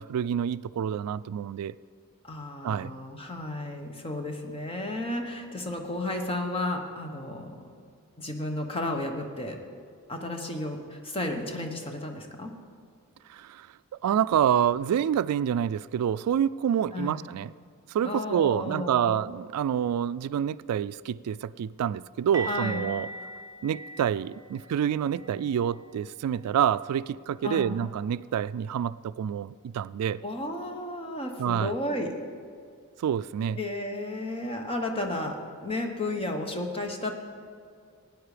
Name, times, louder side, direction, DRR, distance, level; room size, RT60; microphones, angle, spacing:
voice 1, 0.0-1.8 2.6-2.9 13.3-13.7 14.0-17.5 17.9-23.1 23.6-30.2 31.4-31.7 33.0-33.6, right 9 dB, 90° right, 18 dB, 0.3 m, -27 dB
voice 2, 2.2-7.7 8.2-9.6 10.1-12.5 16.9-17.2 18.0-19.1 22.5-22.8 27.4-27.7 30.2-32.1 33.6-37.2, left 1 dB, 25° left, 3 dB, 1.2 m, -33 dB
sound 1, 22.3-28.1 28.4-28.6 29.0-29.1 32.4-32.5, right 2 dB, 15° right, 1.2 m, -42 dB
17.0 x 9.6 x 5.0 m, 2.2 s
head